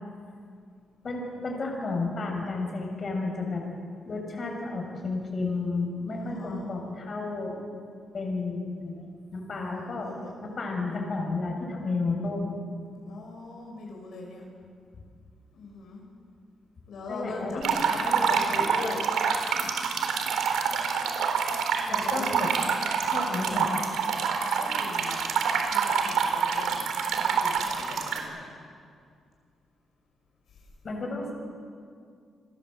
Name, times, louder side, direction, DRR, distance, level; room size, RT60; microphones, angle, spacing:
voice 1, 1.0-3.6 4.0-7.6 8.1-10.1 10.4-12.6 17.1-19.0 21.9-22.5 23.1-23.6 30.8-31.3, left 3 dB, 40° left, 1 dB, 6.8 m, -32 dB
voice 2, 6.1-6.7 9.7-10.3 13.1-14.5 15.5-16.0 16.9-18.2 19.5-19.8 21.8-22.5 23.4-23.5 24.6-28.5 30.5-30.6, left 3 dB, 65° left, 0 dB, 6.0 m, -42 dB
sound 1, 17.6-28.2, right 6 dB, 85° right, 3.8 m, -27 dB
29.0 x 23.0 x 8.0 m, 2.2 s
cardioid pair, 120°, 0 cm